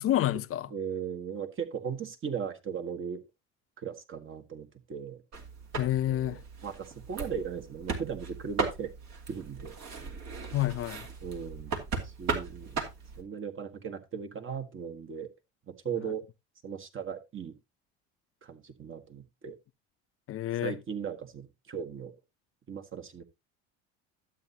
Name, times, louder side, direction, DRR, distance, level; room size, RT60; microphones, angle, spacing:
voice 1, 0.0-0.7 5.8-6.4 10.5-11.1 20.3-20.8, left 13 dB, 45° left, 0.6 m, -28 dB
voice 2, 0.7-3.2 3.8-5.2 6.1-6.4 6.6-8.9 9.3-10.2 11.2-11.7 12.0-12.8 13.2-15.3 15.7-16.2 16.6-17.6 18.4-19.6 20.6-22.1 22.7-23.2, right 7 dB, 40° right, 1.6 m, -37 dB
sound 1, 5.3-13.2, right 4 dB, 55° right, 2.6 m, -37 dB
12.0 x 8.3 x 2.8 m
supercardioid pair, 85°, 33 cm